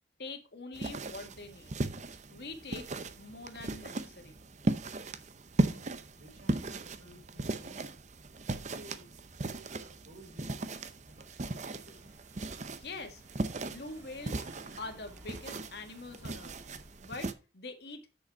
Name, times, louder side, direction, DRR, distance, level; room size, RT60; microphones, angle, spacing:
voice 1, 0.2-1.8 2.3-4.4 12.7-13.2 13.7-14.5 14.8-16.6 17.0-18.0, left 3 dB, 60° left, 5 dB, 1.7 m, -44 dB
sound 1, 0.7-17.3, right 2 dB, 40° right, 0.7 m, -37 dB
voice 2, 5.6-7.8 8.5-10.7 11.1-12.1, right 1 dB, 60° right, 1 dB, 4.5 m, -55 dB
Car / Engine, 10.4-17.2, equal, 15° right, 2.2 m, -59 dB
7.8 x 6.6 x 4.6 m, 0.30 s
head